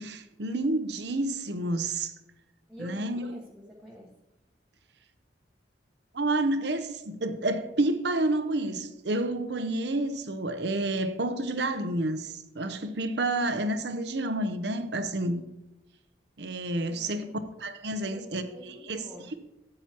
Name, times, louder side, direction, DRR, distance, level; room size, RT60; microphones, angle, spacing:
voice 1, 0.0-2.1 2.8-3.3 6.1-15.4 16.4-17.3 17.6-19.0, right 2 dB, 65° right, 0.8 m, -29 dB
voice 2, 2.7-4.1 16.8-17.4 18.0-19.4, equal, 5° right, 1.2 m, -47 dB
13.0 x 8.7 x 3.0 m
head